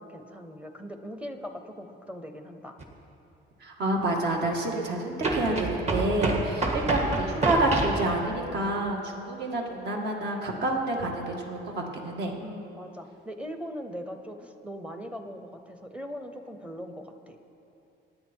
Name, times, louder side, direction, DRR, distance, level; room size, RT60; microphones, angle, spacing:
voice 1, 0.0-2.8 6.8-7.1 12.4-17.4, equal, 5° right, 6 dB, 0.8 m, -40 dB
sound 1, 2.8-2.9 5.2-8.0, right 2 dB, 35° right, 1.6 m, -28 dB
voice 2, 3.6-12.4, right 2 dB, 55° right, 0 dB, 2.1 m, -28 dB
25.5 x 9.8 x 4.6 m, 2.9 s
cardioid pair, 170°, 20 cm